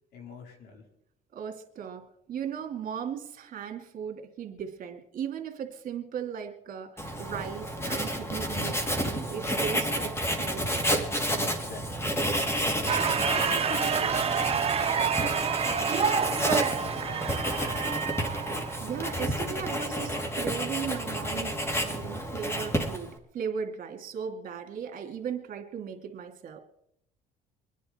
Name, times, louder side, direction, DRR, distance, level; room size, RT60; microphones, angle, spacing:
voice 1, 0.1-0.8 11.5-12.2 12.7-16.4 16.8-18.0, left 4 dB, 75° left, 2 dB, 4.0 m, -44 dB
voice 2, 1.3-10.8 18.8-26.6, right 7 dB, 55° right, 4 dB, 2.5 m, -37 dB
Writing, 7.0-23.2, equal, 15° left, 2.3 m, -30 dB
sound 1, 12.9-19.0, right 7 dB, 35° right, 1.2 m, -28 dB
25.0 x 10.0 x 4.4 m, 0.76 s
cardioid pair, 110°, 17 cm